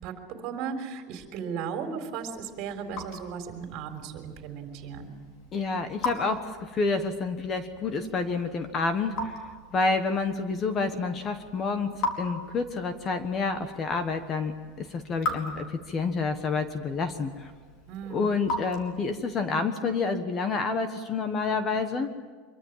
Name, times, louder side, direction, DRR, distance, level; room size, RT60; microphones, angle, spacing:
voice 1, 0.0-5.1 17.9-18.4, right 6 dB, 45° right, 5 dB, 3.7 m, -36 dB
Raindrop / Drip, 2.2-19.4, left 2 dB, 40° left, 4.6 m, -40 dB
voice 2, 5.5-9.4 9.7-17.5 18.1-22.1, left 4 dB, 25° left, 9 dB, 1.3 m, -29 dB
25.0 x 23.5 x 7.5 m, 1.5 s
supercardioid pair, 170°, 0 cm